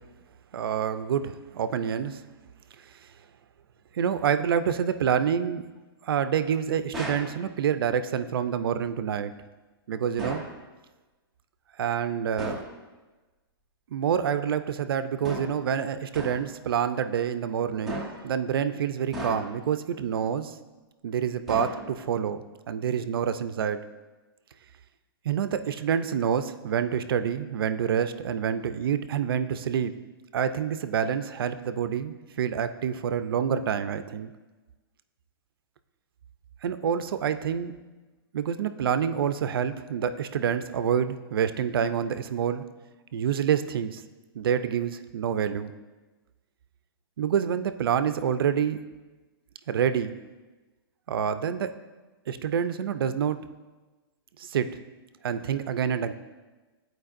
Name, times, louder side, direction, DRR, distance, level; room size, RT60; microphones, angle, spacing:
voice 1, 0.5-2.2 3.9-5.6 6.0-9.3 9.9-10.4 11.8-12.6 13.9-20.6 21.0-23.8 25.2-29.9 30.3-34.3 36.6-37.7 38.3-42.6 43.1-44.0 44.3-45.7 47.2-48.8 49.7-50.2 51.1-51.7 52.3-53.4 54.4-54.7 55.2-56.1, right 8 dB, 65° right, 10 dB, 0.5 m, -27 dB
sound 1, 6.9-7.4 10.2-10.6 12.4-12.8 15.2-15.7 16.1-16.5 17.9-18.3 19.1-19.7 21.5-22.1, equal, ahead, 0.5 m, -36 dB
13.5 x 4.6 x 2.5 m, 1.2 s
hypercardioid pair, 180°, 13 cm